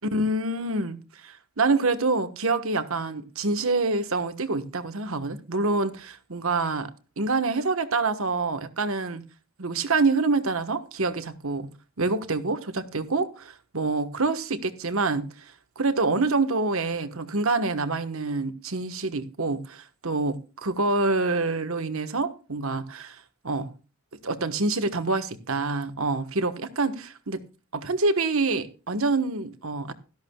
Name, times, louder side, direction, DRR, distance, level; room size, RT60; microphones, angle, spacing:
voice 1, 0.1-6.9 7.2-9.2 9.6-11.7 12.0-15.3 15.8-23.7 24.2-27.4 27.7-29.9, right 3 dB, 65° right, 1.3 m, -26 dB
16.5 x 13.0 x 2.3 m
head